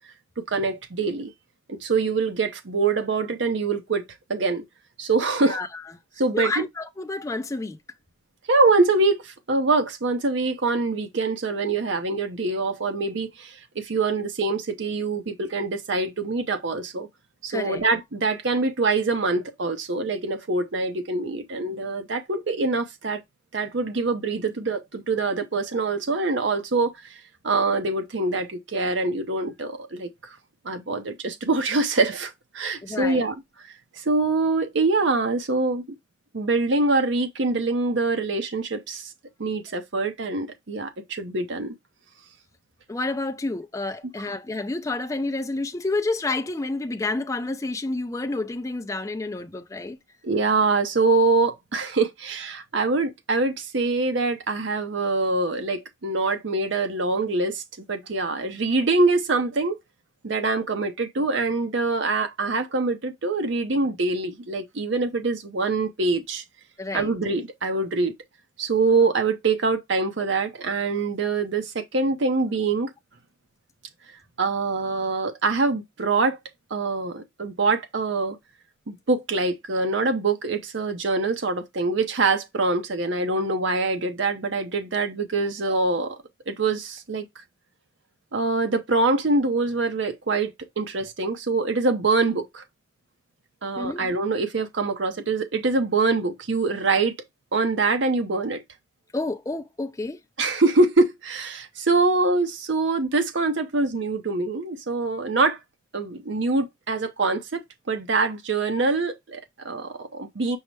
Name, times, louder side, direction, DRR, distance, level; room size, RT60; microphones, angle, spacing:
voice 1, 0.4-1.3 1.7-4.0 4.3-4.6 5.0-5.6 6.2-6.6 8.5-17.1 17.4-23.2 23.5-27.2 27.4-30.4 30.6-33.4 33.6-35.8 36.3-39.1 39.4-41.7 50.2-57.6 57.9-59.8 60.2-66.4 66.9-68.1 68.6-72.9 74.4-76.4 76.7-78.4 78.9-86.2 86.5-87.2 88.3-92.6 93.6-97.1 97.5-98.6 100.4-105.6 105.9-107.6 107.9-110.6, right 3 dB, 65° right, 0.7 m, -24 dB
voice 2, 5.5-5.8 6.3-7.8 17.5-17.8 32.8-33.3 42.9-50.0 66.8-67.1 71.2-71.3 93.8-94.0 99.1-100.2, left 2 dB, 15° left, 0.4 m, -29 dB
5.5 x 2.1 x 4.6 m
head